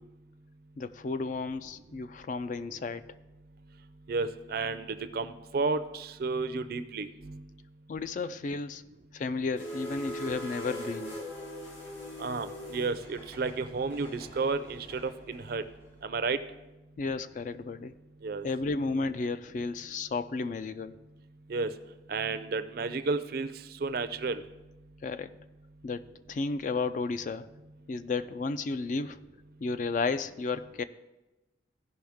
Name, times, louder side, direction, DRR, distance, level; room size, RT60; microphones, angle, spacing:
voice 1, 0.8-3.0 7.9-8.8 9.1-11.2 17.0-17.9 18.4-21.0 25.0-25.3 25.8-27.5 27.9-29.2 29.6-30.8, left 4 dB, 40° left, 12 dB, 0.3 m, -33 dB
voice 2, 4.1-7.4 12.2-15.6 16.0-16.4 18.2-18.5 21.5-21.7 22.1-23.5 23.8-24.4, right 4 dB, 50° right, 11 dB, 0.4 m, -32 dB
sound 1, 9.6-15.9, equal, 85° left, 3.1 m, -42 dB
15.5 x 5.4 x 3.5 m, 1.0 s
head